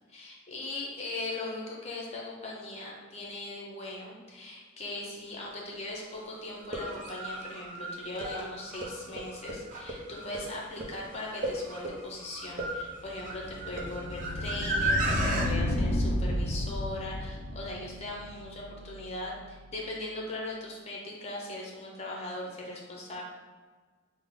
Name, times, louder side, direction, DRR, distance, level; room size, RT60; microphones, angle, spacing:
voice 1, 0.1-23.2, left 2 dB, 30° left, -2 dB, 0.7 m, -39 dB
sound 1, 5.4-5.5 6.6-15.5, right 2 dB, 40° right, 0.5 m, -34 dB
sound 2, 12.7-19.6, left 1 dB, 80° left, 0.4 m, -33 dB
3.7 x 2.0 x 3.6 m, 1.4 s
head